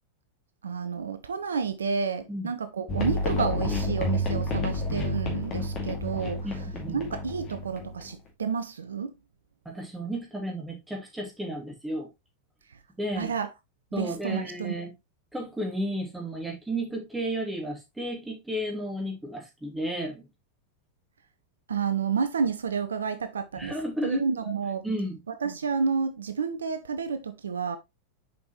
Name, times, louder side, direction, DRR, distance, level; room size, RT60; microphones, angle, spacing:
voice 1, 0.6-6.5 6.9-9.1 13.2-13.5 14.0-14.8 21.7-23.7 24.0-24.8 25.4-27.8, right 5 dB, 70° right, 0.5 m, -30 dB
sound 1, 2.9-8.1, left 1 dB, 35° left, 2.2 m, -30 dB
voice 2, 6.4-7.0 9.6-12.1 13.0-13.4 13.9-14.9 15.3-20.3 23.6-24.2 24.8-25.2, right 1 dB, 5° right, 2.5 m, -33 dB
6.7 x 5.1 x 3.0 m
figure-of-eight pair, 90°, 0 cm